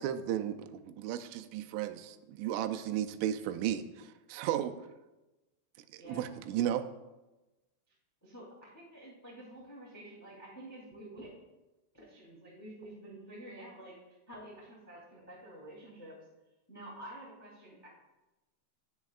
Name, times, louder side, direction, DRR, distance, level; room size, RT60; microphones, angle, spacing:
voice 1, 0.0-4.8 5.9-6.8, right 11 dB, 85° right, 8 dB, 3.1 m, -34 dB
voice 2, 8.2-11.3 11.9-16.2 16.7-17.9, right 1 dB, 10° left, -5 dB, 1.0 m, -49 dB
18.5 x 7.1 x 2.4 m, 1.1 s
omnidirectional pair, 5.5 m